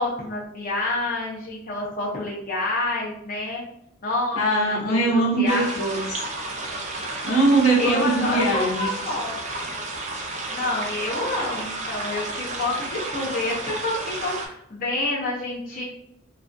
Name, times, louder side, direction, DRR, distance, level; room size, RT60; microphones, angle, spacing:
voice 1, 0.0-3.6 4.0-5.8 7.8-9.7 10.5-15.8, left 2 dB, 40° left, -5 dB, 0.5 m, -28 dB
voice 2, 4.3-6.2 7.2-8.9, right 2 dB, 75° left, -4 dB, 0.8 m, -21 dB
sound 1, 5.5-14.5, right 2 dB, 35° right, 0.4 m, -32 dB
2.3 x 2.2 x 2.5 m, 0.73 s
head